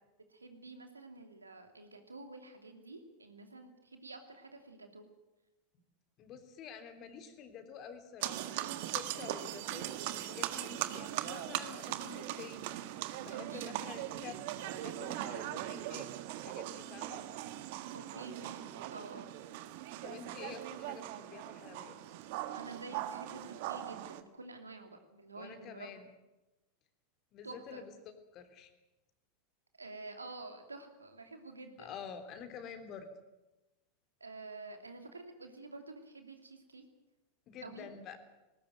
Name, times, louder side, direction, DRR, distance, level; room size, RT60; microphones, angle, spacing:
voice 1, 0.3-5.1 9.2-9.6 13.3-13.7 17.9-19.3 22.5-25.9 27.4-27.8 29.8-31.9 34.2-36.8 37.6-37.9, right 3 dB, 90° right, 6 dB, 2.8 m, -49 dB
voice 2, 6.2-14.4 14.7-16.1 16.3-17.2 20.0-22.0 25.4-26.1 27.3-27.9 28.3-28.7 31.8-33.1 37.5-38.2, left 7 dB, 40° left, 8 dB, 3.5 m, -49 dB
sound 1, 8.2-24.2, right 13 dB, 60° right, 1.5 m, -40 dB
20.0 x 18.5 x 9.2 m, 1.0 s
figure-of-eight pair, 85°, 0 cm